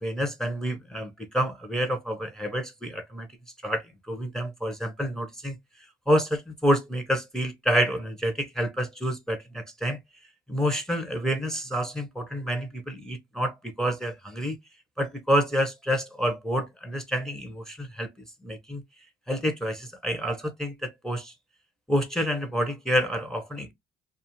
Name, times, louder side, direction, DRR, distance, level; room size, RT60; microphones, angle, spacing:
voice 1, 0.0-3.3 3.6-5.6 6.1-10.0 10.5-14.6 15.0-18.1 18.4-18.8 19.3-21.3 21.9-23.7, equal, 5° left, 0.7 m, -28 dB
2.5 x 2.4 x 2.9 m
cardioid pair, 90°, 20 cm